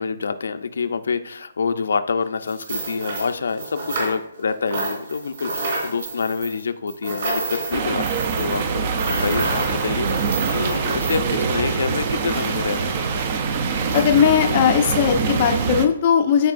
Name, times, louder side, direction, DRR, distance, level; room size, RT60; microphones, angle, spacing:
voice 1, 0.0-13.0, left 5 dB, 75° left, 8 dB, 0.6 m, -27 dB
sound 1, 2.5-4.4 4.7-11.2, right 2 dB, 45° right, 3.4 m, -29 dB
sound 2, 7.7-15.9, right 5 dB, 25° right, 0.5 m, -24 dB
voice 2, 13.9-16.5, left 8 dB, 25° left, 4 dB, 0.5 m, -18 dB
14.0 x 4.7 x 2.6 m, 0.71 s
hypercardioid pair, 180°, 0 cm